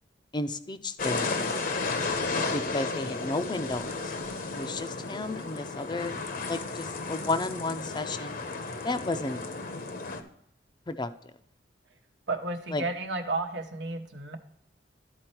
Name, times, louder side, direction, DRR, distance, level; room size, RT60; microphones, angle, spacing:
voice 1, 0.3-1.6 2.5-4.0 4.5-6.2 6.5-8.3 8.8-9.4 10.9-11.1 12.7-12.8, left 2 dB, 25° left, 10 dB, 0.5 m, -32 dB
sound 1, 1.0-10.2, left 3 dB, 55° left, 0.8 m, -33 dB
voice 2, 12.3-14.4, right 3 dB, 85° right, 5 dB, 1.0 m, -32 dB
12.0 x 4.3 x 4.4 m, 0.72 s
head